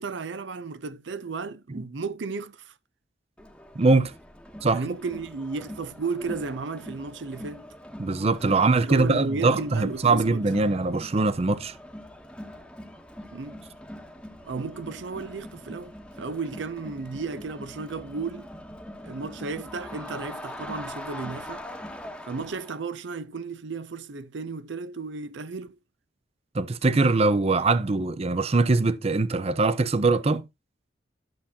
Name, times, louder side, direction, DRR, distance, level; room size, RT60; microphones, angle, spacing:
voice 1, 0.0-2.7 4.7-7.7 8.6-10.4 13.3-13.6 14.4-18.5 19.0-21.7 22.3-25.8, right 4 dB, 85° right, 0.6 m, -34 dB
Crowd, 3.4-22.8, left 1 dB, 5° left, 1.0 m, -42 dB
voice 2, 3.8-4.1 4.6-4.8 8.0-11.8 26.5-30.4, right 3 dB, 35° right, 0.6 m, -22 dB
12.0 x 7.1 x 2.7 m
head